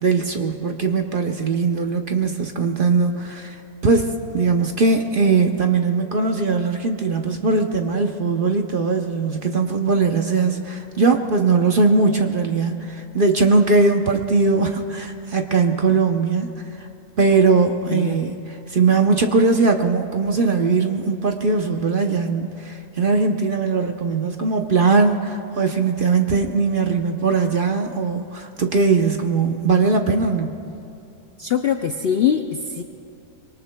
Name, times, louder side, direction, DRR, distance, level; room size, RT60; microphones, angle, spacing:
voice 1, 0.0-3.6 3.8-16.9 17.2-30.5, right 4 dB, 50° right, 4 dB, 0.7 m, -20 dB
voice 2, 17.9-18.2 31.4-32.8, left 8 dB, 75° left, 6 dB, 0.5 m, -22 dB
25.5 x 23.0 x 2.2 m, 2.9 s
omnidirectional pair, 1.7 m